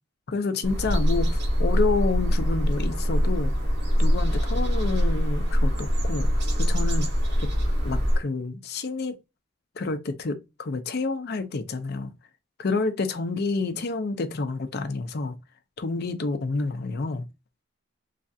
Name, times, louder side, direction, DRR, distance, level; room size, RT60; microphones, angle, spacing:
voice 1, 0.3-3.5 4.0-6.3 6.6-7.1 7.4-7.5 7.8-9.2 9.8-12.1 12.6-15.4 15.8-17.3, left 3 dB, 50° left, 0.5 m, -29 dB
sound 1, 0.6-8.2, equal, 55° right, 0.9 m, -23 dB
3.2 x 2.4 x 2.6 m
head